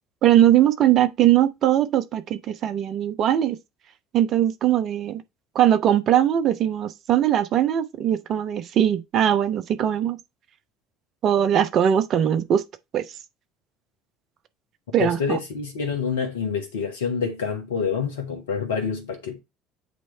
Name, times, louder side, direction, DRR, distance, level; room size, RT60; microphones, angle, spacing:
voice 1, 0.2-3.6 4.1-5.2 5.5-10.2 11.2-12.6 12.9-13.0 14.9-15.4, right 11 dB, 45° right, 0.8 m, -20 dB
voice 2, 15.0-19.4, left 6 dB, 70° left, 1.3 m, -27 dB
8.3 x 3.2 x 4.5 m
figure-of-eight pair, 60°, 0 cm